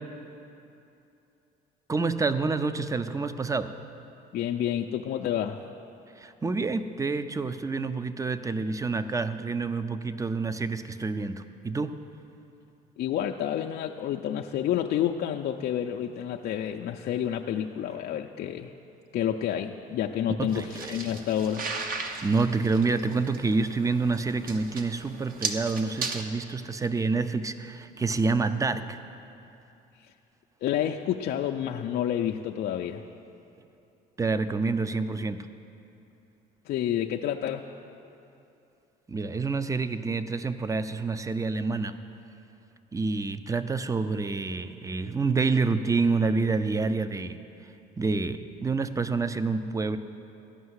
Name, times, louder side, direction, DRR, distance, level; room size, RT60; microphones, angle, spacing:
voice 1, 1.9-3.7 6.2-12.0 20.4-21.0 22.2-29.0 34.2-35.5 39.1-42.0 42.9-47.4 48.0-50.0, right 4 dB, 15° right, 11 dB, 0.6 m, -28 dB
voice 2, 4.3-5.6 13.0-18.7 19.1-21.7 30.6-33.0 36.7-37.6, left 10 dB, 60° left, 2 dB, 0.5 m, -29 dB
sound 1, 20.5-26.2, right 4 dB, 50° right, 1.0 m, -37 dB
14.0 x 5.6 x 9.6 m, 2.8 s
supercardioid pair, 90°, 18 cm